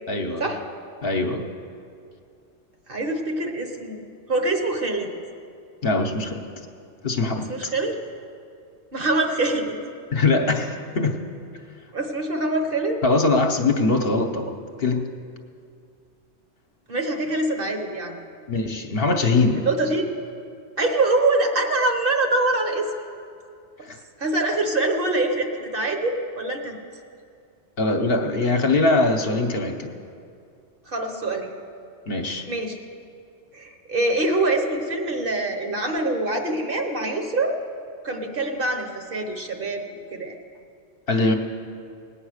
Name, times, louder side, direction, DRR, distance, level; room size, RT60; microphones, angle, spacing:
voice 1, 0.1-0.5 1.0-1.4 5.8-6.5 7.0-7.5 10.1-11.2 13.0-15.1 18.5-19.7 23.9-24.0 27.8-29.9 32.1-32.5 41.1-41.4, left 3 dB, 55° left, 4 dB, 1.1 m, -22 dB
voice 2, 2.9-4.0 4.3-5.1 7.4-8.0 8.9-9.7 11.9-13.0 16.9-18.2 19.6-20.1 20.8-22.9 24.2-26.8 30.9-31.5 32.5-32.8 33.5-37.5 38.0-39.8 40.1-40.3, right 2 dB, 50° right, 4 dB, 1.4 m, -24 dB
18.0 x 8.9 x 6.5 m, 2.4 s
omnidirectional pair, 1.2 m